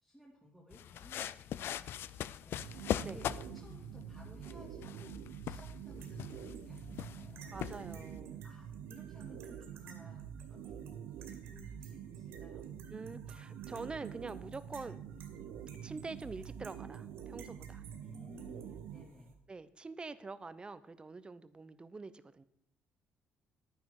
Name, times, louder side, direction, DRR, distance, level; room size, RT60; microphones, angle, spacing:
voice 1, 0.0-7.5 8.4-10.2 10.5-10.9 11.2-12.7 18.0-19.3, equal, 5° left, -4 dB, 2.5 m, -58 dB
sound 1, 0.7-8.2, left 11 dB, 70° left, 0.4 m, -41 dB
sound 2, 2.6-19.1, right 9 dB, 90° right, 0.8 m, -47 dB
sound 3, 5.9-19.3, right 5 dB, 70° right, 2.3 m, -59 dB
voice 2, 7.5-8.5 12.9-15.0 15.8-17.8 19.5-22.4, right 3 dB, 25° right, 14 dB, 0.8 m, -45 dB
11.0 x 9.7 x 4.8 m, 0.77 s
cardioid pair, 90°, 4 cm